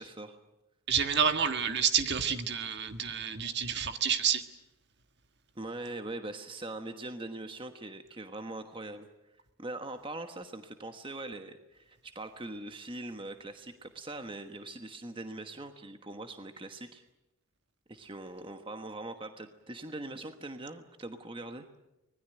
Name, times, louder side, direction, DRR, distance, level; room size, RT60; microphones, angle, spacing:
voice 1, 0.9-4.4, right 7 dB, 50° right, 8 dB, 1.6 m, -29 dB
voice 2, 5.5-9.1 9.6-17.0 17.9-21.7, right 2 dB, 25° right, 7 dB, 1.3 m, -42 dB
25.0 x 20.0 x 9.1 m, 0.94 s
head